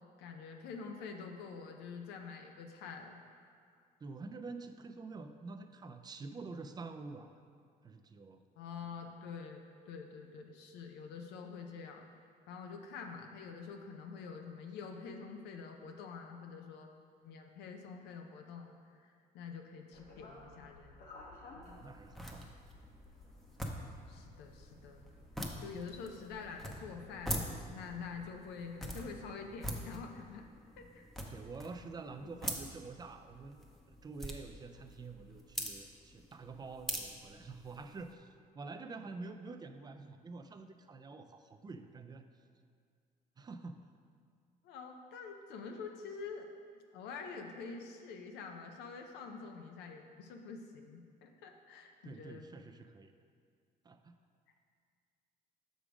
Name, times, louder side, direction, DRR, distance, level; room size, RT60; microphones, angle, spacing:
voice 1, 0.2-3.2 8.6-12.0 12.5-16.9 17.2-21.0 24.1-25.0 25.6-30.5 30.8-31.1 44.6-46.5 46.9-52.6, left 5 dB, 85° left, 4 dB, 0.6 m, -47 dB
voice 2, 4.0-7.3 7.8-8.4 21.7-22.5 31.3-33.6 34.0-42.3 43.4-43.8 52.0-53.1 53.8-54.1, right 3 dB, 25° right, 7 dB, 0.4 m, -47 dB
sound 1, 19.9-28.3, left 2 dB, 60° left, 1.3 m, -57 dB
sound 2, 21.6-38.1, equal, ahead, 0.7 m, -45 dB
6.1 x 5.1 x 5.0 m, 2.1 s
cardioid pair, 110°, 17 cm